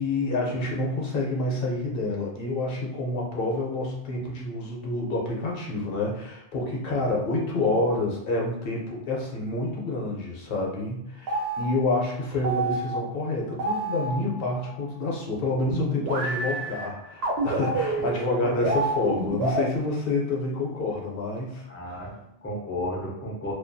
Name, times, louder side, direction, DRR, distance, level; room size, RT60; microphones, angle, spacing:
voice 1, 0.0-21.6, left 2 dB, 65° left, -2 dB, 0.8 m, -28 dB
sound 1, 11.3-14.8 15.7-19.7, right 2 dB, 80° right, 0.8 m, -29 dB
voice 2, 18.4-18.7 21.7-23.5, left 1 dB, 20° left, -3 dB, 0.3 m, -33 dB
2.3 x 2.2 x 2.5 m, 0.85 s
omnidirectional pair, 1.1 m